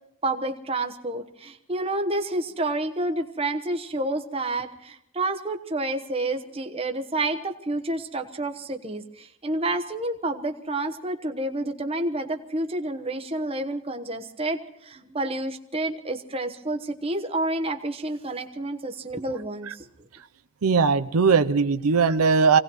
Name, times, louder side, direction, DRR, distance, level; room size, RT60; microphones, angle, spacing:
voice 1, 0.2-19.9, right 2 dB, 25° right, 7 dB, 1.1 m, -29 dB
voice 2, 20.6-22.6, right 5 dB, 90° right, 10 dB, 0.7 m, -19 dB
25.5 x 18.0 x 3.1 m, 0.81 s
head